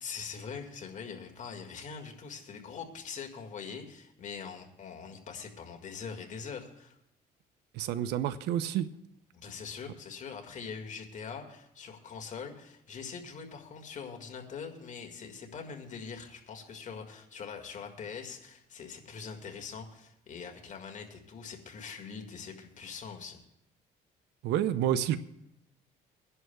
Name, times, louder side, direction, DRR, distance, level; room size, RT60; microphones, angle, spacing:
voice 1, 0.0-7.0 9.3-23.4, left 6 dB, 45° left, 3 dB, 1.8 m, -43 dB
voice 2, 7.7-8.9 24.4-25.2, right 11 dB, 80° right, 14 dB, 0.6 m, -29 dB
24.0 x 11.0 x 2.3 m, 0.80 s
cardioid pair, 110°, 17 cm